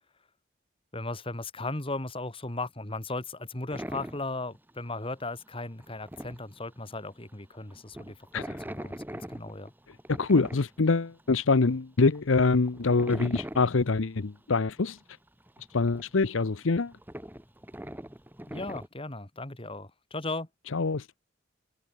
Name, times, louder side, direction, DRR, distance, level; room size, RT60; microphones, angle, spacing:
voice 1, 0.9-9.7 18.5-20.5, left 2 dB, 30° left, 2.4 m, -37 dB
sound 1, 3.7-4.4 4.7-5.2 5.5-5.6 5.8-7.2 7.5-11.3 11.7-11.8 12.0-13.9 14.3-14.4 14.8-15.0 15.3-18.9, right 1 dB, 10° right, 1.9 m, -42 dB
voice 2, 10.1-15.0 15.7-16.9 20.7-21.2, left 3 dB, 90° left, 0.8 m, -25 dB
head